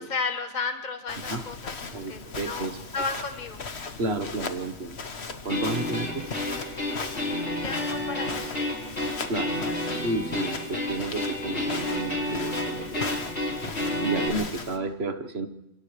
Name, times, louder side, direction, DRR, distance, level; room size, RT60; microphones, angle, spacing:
voice 1, 0.0-3.6 7.6-8.9, left 4 dB, 40° left, 6 dB, 1.6 m, -34 dB
Walk footsteps, 1.1-14.8, left 4 dB, 70° left, 1.6 m, -38 dB
voice 2, 1.9-2.8 4.0-5.0 5.4-6.2 9.3-9.5 10.0-13.1 14.0-15.5, right 3 dB, 70° right, 9 dB, 1.6 m, -31 dB
sound 1, 5.5-14.3, left 1 dB, 90° left, 4.8 m, -30 dB
29.5 x 27.5 x 3.3 m, 0.89 s
omnidirectional pair, 1.1 m